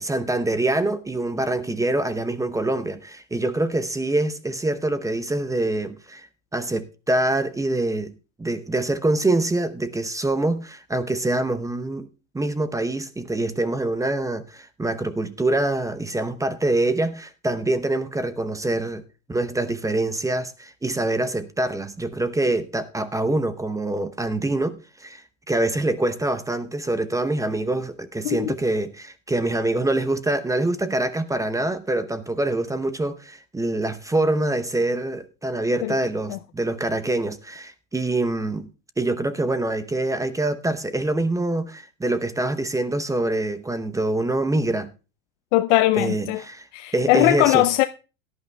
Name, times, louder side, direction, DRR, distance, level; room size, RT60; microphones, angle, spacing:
voice 1, 0.0-6.3 6.5-8.1 8.4-12.1 12.3-19.0 19.3-38.7 39.0-44.9 45.9-46.7 46.9-47.6, right 2 dB, 10° right, 0.7 m, -25 dB
voice 2, 45.5-46.4 46.7-47.8, left 17 dB, 65° left, 0.6 m, -20 dB
17.0 x 11.0 x 2.2 m
hypercardioid pair, 105°, 40 cm